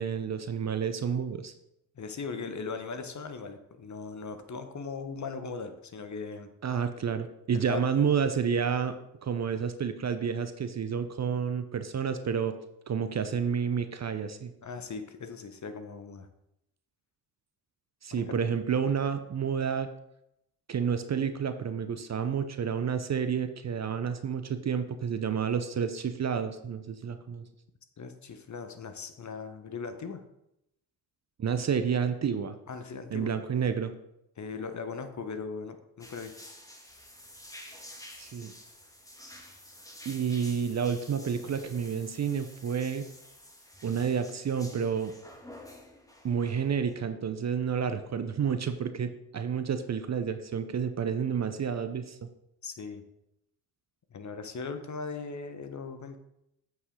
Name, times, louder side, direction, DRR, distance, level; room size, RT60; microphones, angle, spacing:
voice 1, 0.0-1.5 6.6-12.5 12.9-14.5 18.0-19.9 20.7-27.5 31.4-32.6 33.1-33.9 38.2-38.5 40.0-43.1 43.8-45.1 46.2-52.3, right 7 dB, 35° right, 10 dB, 0.7 m, -30 dB
voice 2, 2.0-6.5 7.5-7.8 14.6-16.3 18.1-18.3 28.0-30.2 32.7-33.3 34.4-36.3 52.6-53.0 54.1-56.2, left 4 dB, 35° left, 9 dB, 1.1 m, -39 dB
sound 1, 36.0-46.9, left 1 dB, 5° left, 1.7 m, -50 dB
8.0 x 5.6 x 3.8 m, 0.82 s
hypercardioid pair, 45°, 48 cm